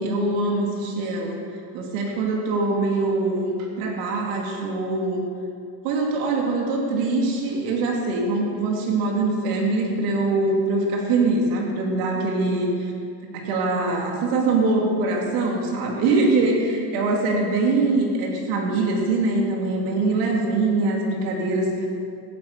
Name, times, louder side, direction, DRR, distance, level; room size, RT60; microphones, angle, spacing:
voice 1, 0.0-1.4 1.7-5.2 5.8-12.9 13.3-21.9, right 3 dB, 85° right, 0 dB, 2.8 m, -23 dB
15.5 x 10.0 x 6.7 m, 2.4 s
cardioid pair, 115°, 49 cm